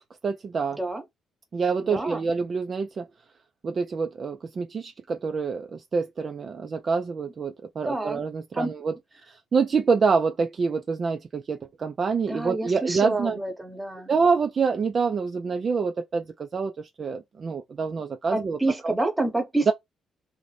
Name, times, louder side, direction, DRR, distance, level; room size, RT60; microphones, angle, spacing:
voice 1, 0.2-0.8 1.5-3.0 3.6-8.9 9.5-13.4 14.1-16.7 17.0-18.6 18.8-19.0 19.7-19.8, right 5 dB, 45° right, 0.3 m, -26 dB
voice 2, 1.9-2.3 7.9-8.2 8.6-8.7 12.3-14.1 18.3-19.7, right 2 dB, 10° right, 0.8 m, -28 dB
2.6 x 2.1 x 3.2 m
cardioid pair, 90°, 0 cm